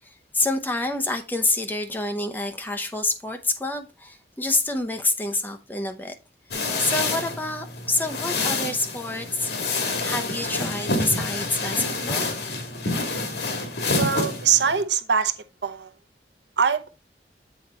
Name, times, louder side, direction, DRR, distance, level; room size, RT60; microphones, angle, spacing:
voice 1, 0.0-6.1 6.5-9.5 10.0-12.3, left 2 dB, 10° left, 0.7 m, -27 dB
sound 1, 6.5-14.8, left 3 dB, 80° left, 1.5 m, -28 dB
voice 2, 13.9-15.3 15.6-15.9 16.6-16.9, right 7 dB, 85° right, 0.7 m, -22 dB
7.8 x 4.3 x 4.2 m
head